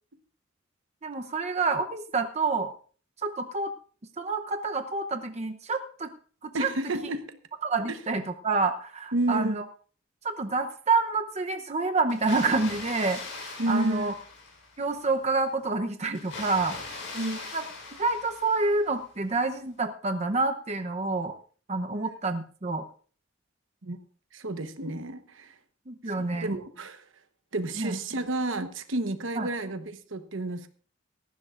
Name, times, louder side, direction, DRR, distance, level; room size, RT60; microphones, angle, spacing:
voice 1, 1.0-2.7 3.2-3.7 4.2-6.1 6.4-6.7 7.6-9.6 10.2-14.1 14.8-16.8 17.5-17.6 18.0-21.3 21.7-22.9 25.9-26.5 27.8-28.0 29.4-29.5, right 3 dB, 35° right, 6 dB, 0.8 m, -28 dB
voice 2, 6.5-7.4 7.9-8.0 9.1-9.6 13.6-14.1 17.1-17.4 21.9-22.0 23.8-24.0 24.3-25.5 26.0-27.0 27.5-30.7, right 2 dB, 75° right, 9 dB, 1.1 m, -31 dB
Water, 12.1-14.9 16.1-19.0, left 3 dB, 70° left, 6.2 m, -40 dB
18.0 x 14.5 x 2.5 m, 0.41 s
head